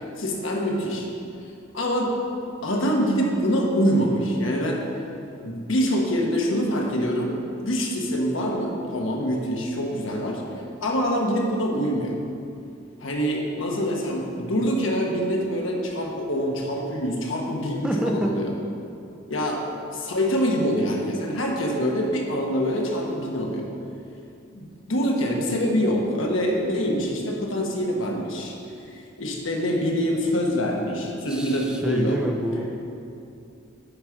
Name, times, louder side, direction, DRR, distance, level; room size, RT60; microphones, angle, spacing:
voice 1, 0.2-1.1 1.7-2.2 2.6-4.8 5.4-7.3 7.6-10.4 10.8-12.2 13.0-18.5 19.3-19.6 19.9-23.7 24.5-28.6 28.9-32.2, equal, 75° left, 0 dB, 1.2 m, -25 dB
voice 2, 17.8-18.3 19.3-19.6 31.3-32.9, equal, 5° right, 1 dB, 0.5 m, -28 dB
8.6 x 4.9 x 5.8 m, 2.6 s
head